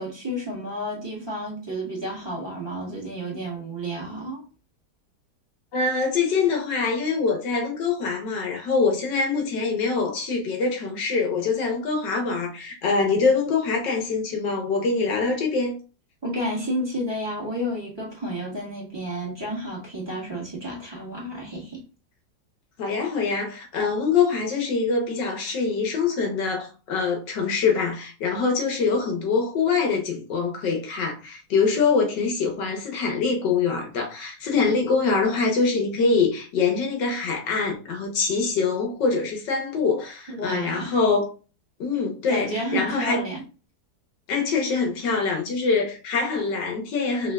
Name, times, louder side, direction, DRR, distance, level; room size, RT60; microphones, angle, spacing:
voice 1, 0.0-4.4 16.2-21.8 40.3-41.0 42.3-43.4, equal, 15° right, 1.5 m, -31 dB
voice 2, 5.7-15.8 22.8-41.3 41.8-43.2 44.3-47.3, left 4 dB, 90° left, 1.7 m, -24 dB
5.4 x 3.0 x 2.3 m
omnidirectional pair, 1.8 m